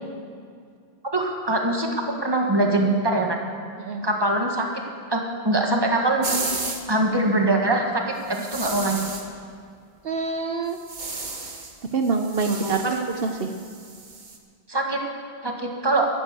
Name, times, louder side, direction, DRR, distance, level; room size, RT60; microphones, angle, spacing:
voice 1, 1.1-3.4 4.0-4.7 5.1-6.4 6.9-9.0 12.5-13.0 14.7-15.0 15.4-16.1, right 2 dB, 25° right, 1 dB, 1.7 m, -23 dB
sound 1, 6.2-6.8 8.3-9.3 10.7-11.7 12.0-14.4, right 3 dB, 50° right, 1.4 m, -33 dB
voice 2, 10.0-10.8 11.9-13.5, right 4 dB, 70° right, 5 dB, 1.0 m, -26 dB
13.5 x 11.0 x 6.8 m, 2.2 s
omnidirectional pair, 1.0 m